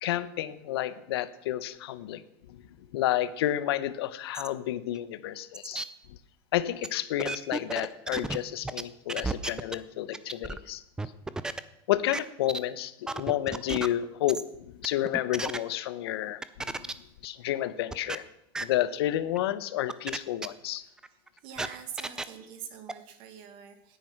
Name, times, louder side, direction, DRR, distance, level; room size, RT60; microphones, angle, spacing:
voice 1, 0.0-2.2 2.5-2.6 2.9-5.9 6.5-10.8 11.9-16.9 17.2-18.2 18.6-20.8, left 13 dB, 80° left, 15 dB, 1.0 m, -30 dB
sound 1, 4.3-4.5 4.9-5.0 5.5-5.8 6.8-6.9 7.2-8.4 8.6-8.8 9.1-9.7 10.1-10.6 11.0-11.6 12.1-12.2 12.5-12.6 13.1-13.9 14.3-14.4 14.8-15.6 16.4-16.9 17.2-17.3 17.9-18.1 18.5-18.6 19.4-19.5 19.9-20.2 20.4-20.5 21.0-22.2 22.9-23.0, right 3 dB, 5° right, 0.4 m, -33 dB
voice 2, 21.4-24.0, right 8 dB, 40° right, 9 dB, 1.9 m, -44 dB
17.5 x 9.9 x 6.0 m, 0.81 s
supercardioid pair, 165°, 13 cm